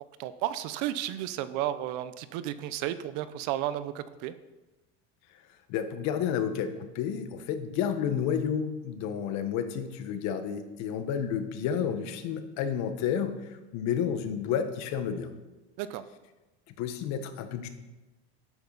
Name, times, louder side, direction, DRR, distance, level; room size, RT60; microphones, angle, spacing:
voice 1, 0.2-4.3 15.8-16.0, right 12 dB, 70° right, 13 dB, 0.9 m, -33 dB
voice 2, 5.7-6.7 6.9-15.3 16.8-17.7, left 8 dB, 65° left, 8 dB, 1.4 m, -31 dB
12.5 x 9.6 x 4.1 m, 1.1 s
supercardioid pair, 125°, 30 cm